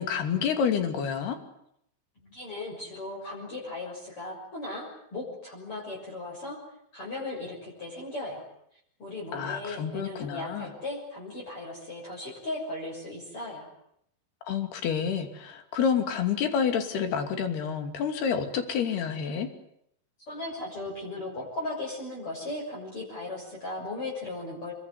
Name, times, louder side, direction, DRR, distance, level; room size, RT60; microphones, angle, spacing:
voice 1, 0.0-1.4 9.3-10.7 14.5-19.5, left 7 dB, 60° left, 7 dB, 4.6 m, -28 dB
voice 2, 2.2-6.6 6.9-8.4 9.0-13.7 20.3-24.7, left 2 dB, 30° left, -5 dB, 7.3 m, -37 dB
26.5 x 22.0 x 9.9 m, 0.75 s
omnidirectional pair, 5.4 m